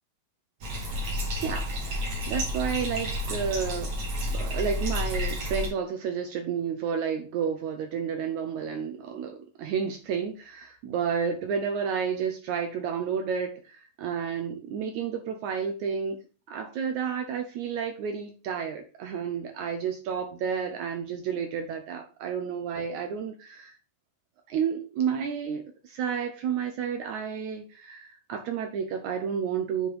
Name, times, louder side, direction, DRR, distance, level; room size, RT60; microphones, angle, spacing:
Bathtub (filling or washing), 0.6-5.7, left 1 dB, 45° right, 2.7 m, -30 dB
voice 1, 1.3-1.7 2.3-3.9 4.2-16.2 16.5-23.8 24.5-29.9, right 7 dB, 85° right, 5 dB, 1.6 m, -31 dB
7.7 x 4.8 x 4.9 m, 0.35 s
omnidirectional pair, 4.5 m